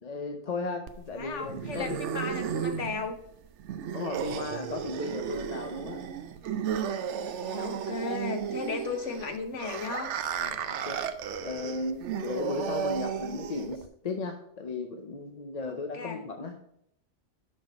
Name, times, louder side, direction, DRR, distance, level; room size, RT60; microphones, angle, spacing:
voice 1, 0.0-2.0 3.9-6.0 10.4-11.0 11.4-16.5, left 3 dB, 40° left, 4 dB, 0.7 m, -35 dB
sound 1, 0.9-13.9, right 7 dB, 85° right, 0.9 m, -34 dB
voice 2, 1.2-3.2 7.2-10.1 15.7-16.2, left 4 dB, 90° left, 5 dB, 1.4 m, -35 dB
6.3 x 6.0 x 4.2 m, 0.74 s
omnidirectional pair, 1.2 m